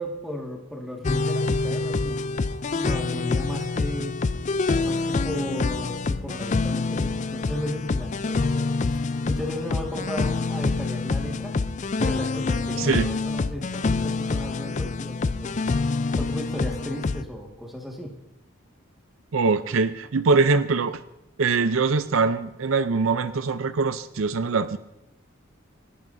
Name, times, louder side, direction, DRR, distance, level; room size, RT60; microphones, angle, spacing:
voice 1, 0.0-2.3 2.7-4.2 4.8-8.9 9.3-11.5 12.0-15.7 16.2-18.1, left 1 dB, ahead, -1 dB, 1.8 m, -35 dB
sound 1, 1.0-17.2, left 3 dB, 35° left, 0.4 m, -26 dB
voice 2, 12.8-13.1 19.3-21.0 21.4-24.8, right 4 dB, 70° right, 13 dB, 0.5 m, -23 dB
30.0 x 12.0 x 2.7 m, 0.91 s
head